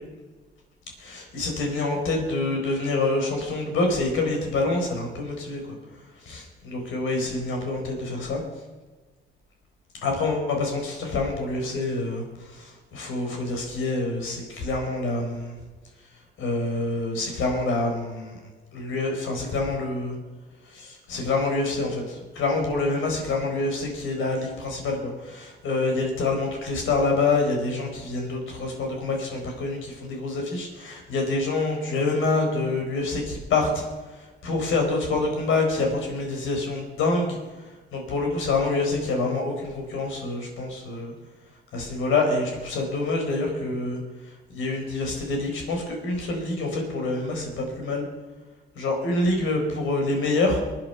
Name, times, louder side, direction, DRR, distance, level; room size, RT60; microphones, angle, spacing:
voice 1, 1.0-5.6 6.3-8.4 10.0-15.5 16.4-18.4 18.7-20.2 20.7-33.8 34.1-41.1 41.7-44.0 44.5-48.1 48.7-50.6, left 3 dB, 85° left, 2 dB, 4.6 m, -26 dB
23.5 x 8.9 x 5.8 m, 1.2 s
cardioid pair, 90°, 20 cm